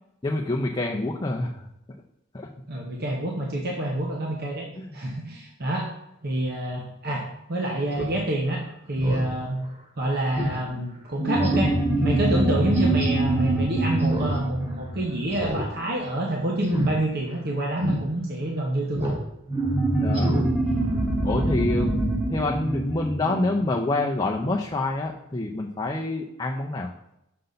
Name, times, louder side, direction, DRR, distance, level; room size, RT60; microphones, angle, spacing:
voice 1, 0.2-1.5 2.3-2.5 4.7-5.0 20.0-20.3 21.2-26.9, left 2 dB, 20° left, -1 dB, 0.5 m, -27 dB
voice 2, 2.7-4.7 4.9-5.9 6.2-8.6 8.9-9.6 10.0-11.8 12.0-19.2, right 1 dB, 50° right, -1 dB, 0.9 m, -27 dB
Speech synthesizer, 7.9-8.1 8.5-8.6 8.9-9.3 9.7-9.8 10.4-10.6 10.9-11.0 11.4-11.8 12.7-13.1 14.0-14.4 14.7-14.8 15.3-15.7 16.0-16.2 16.6-16.9 17.3-17.4 17.8-18.0 18.9-19.2 19.5-19.7 20.1-20.5 20.8-20.9, equal, 30° right, 1.4 m, -29 dB
sound 1, 11.2-16.1 19.5-24.4, right 2 dB, 5° right, 1.0 m, -25 dB
6.7 x 5.4 x 3.9 m, 0.84 s
head